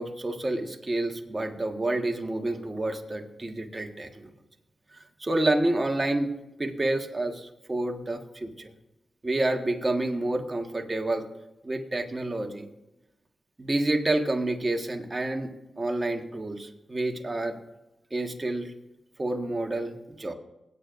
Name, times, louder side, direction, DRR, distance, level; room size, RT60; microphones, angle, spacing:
voice 1, 0.0-4.1 5.2-6.3 6.6-8.7 9.2-11.2 11.6-12.7 13.6-17.6 18.1-18.7 19.2-20.3, right 2 dB, 35° right, 4 dB, 1.6 m, -29 dB
21.5 x 9.2 x 2.6 m, 0.97 s
supercardioid pair, 40°, 0 cm